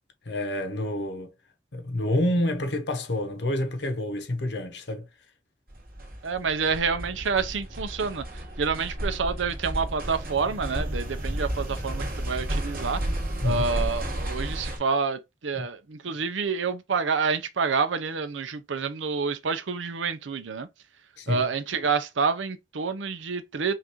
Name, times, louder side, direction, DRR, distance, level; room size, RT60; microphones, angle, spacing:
voice 1, 0.2-1.3 1.7-5.1 13.4-13.6 15.5-15.7 21.2-21.5, left 1 dB, 65° left, 0.9 m, -28 dB
sound 1, 5.7-14.8, right 1 dB, 50° right, 2.0 m, -32 dB
voice 2, 6.2-8.2 8.6-13.0 13.4-20.7 21.3-23.7, right 5 dB, 85° right, 0.6 m, -28 dB
5.7 x 2.6 x 3.0 m
head